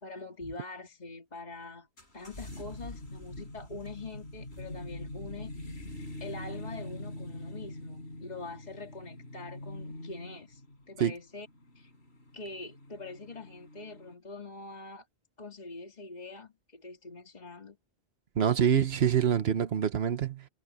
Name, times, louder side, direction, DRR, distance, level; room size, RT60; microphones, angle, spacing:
voice 1, 0.0-1.9 2.1-5.8 6.2-10.6 10.9-11.5 11.8-11.9 12.3-15.1 15.4-17.8, left 3 dB, 40° left, 2.4 m, -44 dB
sound 1, 2.0-14.1, left 1 dB, 85° left, 5.8 m, -44 dB
voice 2, 18.4-20.5, right 8 dB, 75° right, 1.2 m, -26 dB
omnidirectional pair, 1.1 m